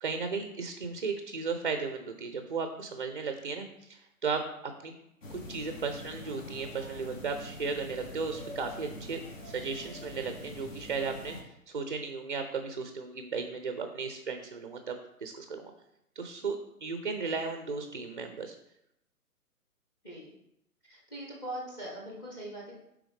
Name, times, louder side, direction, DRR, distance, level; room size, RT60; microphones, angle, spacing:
voice 1, 0.0-4.5 4.8-4.9 5.3-15.7 16.2-18.5, right 4 dB, 35° right, 6 dB, 0.4 m, -35 dB
sound 1, 5.2-11.4, left 1 dB, 55° left, 1.3 m, -44 dB
voice 2, 20.0-20.3 20.8-22.7, right 1 dB, 15° left, -2 dB, 0.7 m, -41 dB
9.4 x 3.5 x 3.4 m, 0.80 s
figure-of-eight pair, 135°, 45 cm